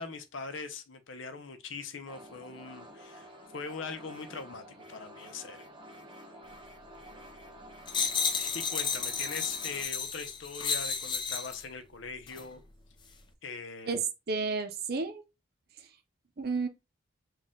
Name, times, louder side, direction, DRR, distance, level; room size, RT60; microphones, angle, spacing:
voice 1, 0.0-5.6 8.3-12.6 13.4-13.9, left 4 dB, 70° left, 0.7 m, -41 dB
sound 1, 2.1-9.8, equal, 25° right, 0.9 m, -50 dB
sound 2, 7.9-11.6 12.3-12.4, left 5 dB, 25° left, 0.5 m, -32 dB
voice 2, 13.9-15.2 16.4-16.7, right 4 dB, 50° right, 0.6 m, -31 dB
4.1 x 2.4 x 3.7 m
head